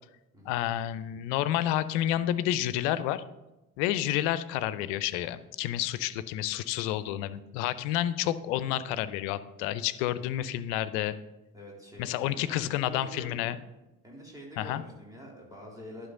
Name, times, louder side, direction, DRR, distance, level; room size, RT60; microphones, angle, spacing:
voice 1, 0.5-3.2 3.8-11.2 12.0-13.6 14.6-14.8, left 12 dB, 65° left, 15 dB, 0.6 m, -30 dB
voice 2, 11.5-13.5 14.0-16.1, equal, 10° right, -2 dB, 3.4 m, -46 dB
11.0 x 5.8 x 3.8 m, 1.0 s
figure-of-eight pair, 50°, 42 cm